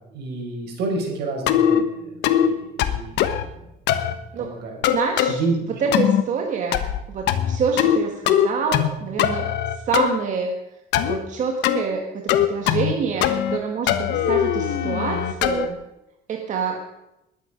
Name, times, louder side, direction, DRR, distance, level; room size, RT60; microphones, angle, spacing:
voice 1, 0.1-3.5 3.9-4.8 5.3-5.9, right 3 dB, 70° right, 1 dB, 5.6 m, -30 dB
sound 1, 1.5-1.8 2.2-2.5 2.8-3.4 3.9-4.1 4.8-5.3 5.9-6.2 6.7-7.0 7.3-8.0 8.3-8.9 9.2-10.1 10.9-11.2 11.6-11.8 12.3-12.9 13.2-13.6 13.9-15.7, left 10 dB, 90° left, 1.2 m, -20 dB
voice 2, 4.9-5.4 5.8-6.8 7.1-9.5 9.9-10.5 11.1-15.8 16.3-16.8, right 5 dB, 45° right, 2 dB, 1.7 m, -26 dB
20.5 x 9.3 x 5.3 m, 0.90 s
cardioid pair, 150°, 17 cm